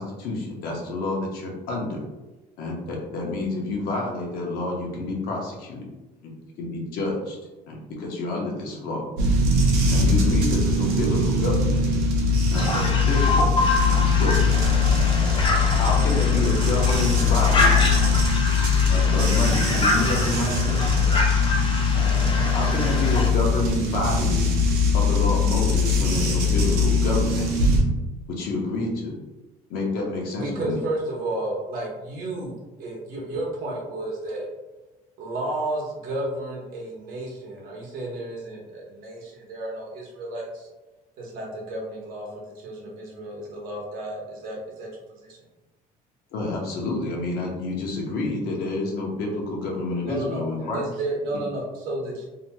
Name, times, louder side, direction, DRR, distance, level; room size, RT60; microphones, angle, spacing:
voice 1, 0.0-2.0 2.6-5.8 6.6-7.4 7.7-9.0 9.9-11.8 12.5-13.5 13.9-14.4 15.8-17.8 18.9-20.8 22.5-24.4 24.9-27.5 28.4-29.1 29.7-30.8 46.3-50.8, left 2 dB, 70° left, 0.8 m, -28 dB
sound 1, 9.2-27.8, left 4 dB, 85° right, 0.7 m, -21 dB
voice 2, 12.5-23.3, left 2 dB, 30° left, 0.5 m, -27 dB
voice 3, 30.3-34.5 35.2-40.7 41.2-44.9 45.2-45.4 50.0-50.4 50.7-52.3, right 2 dB, 65° right, 0.9 m, -32 dB
2.9 x 2.8 x 2.2 m
cardioid pair, 155°, 16 cm